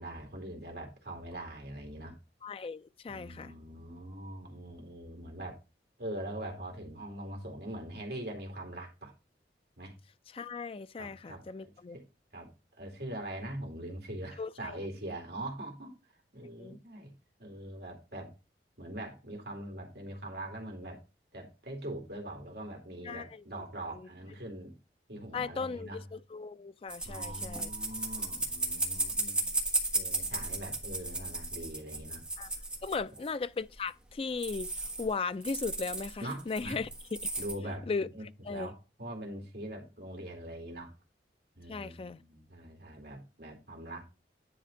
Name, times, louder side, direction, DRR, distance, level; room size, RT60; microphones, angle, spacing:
voice 1, 0.0-2.2 3.1-5.6 6.0-9.1 9.8-9.9 11.0-12.0 12.3-16.0 16.3-17.1 17.4-18.3 18.8-21.0 21.3-24.7 25.1-26.0 27.1-29.5 29.9-32.2 36.2-36.8 37.4-40.9 41.5-44.0, right 1 dB, 60° right, 2.4 m, -42 dB
voice 2, 2.4-3.5 10.3-12.0 14.4-14.8 16.6-16.8 23.0-23.4 23.9-24.1 25.3-27.7 32.4-32.5 32.8-34.7 35.0-37.2 37.9-38.1 38.4-38.7 41.7-42.2, left 4 dB, 30° left, 0.3 m, -37 dB
sound 1, 26.9-33.3 33.8-33.9 34.1-34.2 34.4-35.1 35.4-37.5, right 2 dB, 5° right, 1.3 m, -35 dB
10.0 x 3.4 x 5.1 m
head